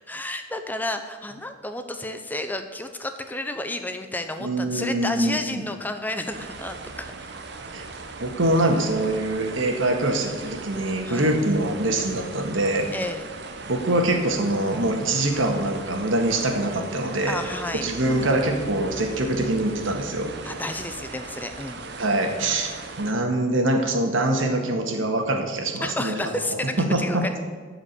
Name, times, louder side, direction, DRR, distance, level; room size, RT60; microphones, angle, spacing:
voice 1, 0.1-7.3 11.0-11.4 12.9-13.3 17.3-17.9 20.4-21.9 25.8-27.3, left 1 dB, 10° left, 7 dB, 0.6 m, -31 dB
voice 2, 4.4-5.4 7.7-7.8 8.2-12.9 13.7-17.4 17.8-20.3 22.0-26.2 26.8-27.4, right 1 dB, 80° right, 3 dB, 1.8 m, -24 dB
sound 1, 6.3-23.1, right 3 dB, 55° right, 1.0 m, -38 dB
13.0 x 5.1 x 8.2 m, 1.5 s
head